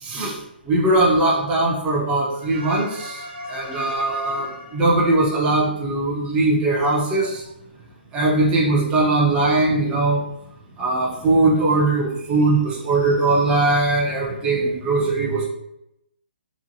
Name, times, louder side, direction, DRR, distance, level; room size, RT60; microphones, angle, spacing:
voice 1, 0.0-0.4 0.7-7.4 8.1-10.2 10.8-15.5, right 2 dB, 15° right, -5 dB, 0.5 m, -20 dB
2.9 x 2.1 x 2.6 m, 0.80 s
hypercardioid pair, 145°, 6 cm